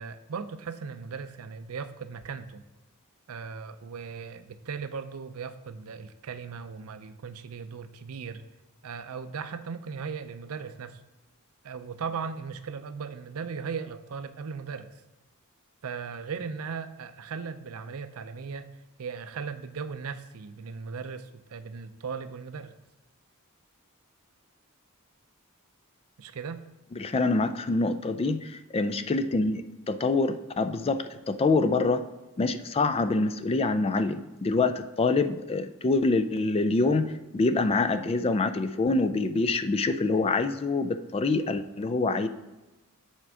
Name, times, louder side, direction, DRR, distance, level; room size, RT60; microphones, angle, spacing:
voice 1, 0.0-2.6 3.3-8.4 8.8-11.0 11.6-14.9 15.8-18.7 19.0-22.8 26.2-26.6, right 5 dB, 70° right, 11 dB, 0.5 m, -37 dB
voice 2, 26.9-32.0 32.4-42.3, left 3 dB, 25° left, 10 dB, 0.3 m, -26 dB
7.4 x 4.4 x 4.7 m, 1.1 s
head